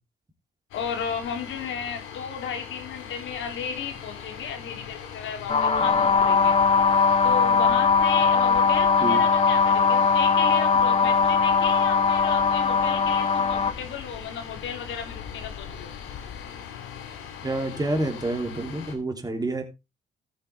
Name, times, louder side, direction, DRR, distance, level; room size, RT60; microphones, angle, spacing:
sound 1, 0.7-19.0, left 8 dB, 90° left, 2.4 m, -40 dB
voice 1, 0.7-6.6 7.2-15.9, left 7 dB, 75° left, 5 dB, 3.2 m, -34 dB
sound 2, 5.5-13.7, left 5 dB, 30° left, 1.3 m, -20 dB
voice 2, 17.4-19.6, right 2 dB, 20° right, 4 dB, 3.2 m, -28 dB
14.0 x 8.6 x 3.5 m, 0.25 s
cardioid pair, 90°, 20 cm